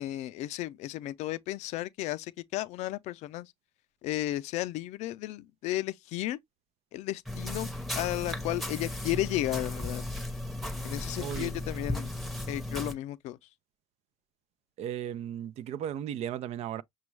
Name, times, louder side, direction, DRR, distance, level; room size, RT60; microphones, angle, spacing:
voice 1, 0.0-3.5 4.0-6.4 6.9-10.0 10.8-12.1 12.5-13.4, left 15 dB, 85° left, 0.4 m, -34 dB
sound 1, 7.3-12.9, left 1 dB, ahead, 0.8 m, -35 dB
voice 2, 11.2-11.5 14.8-16.8, right 10 dB, 70° right, 0.4 m, -35 dB
6.0 x 2.2 x 3.1 m
cardioid pair, 100°, 11 cm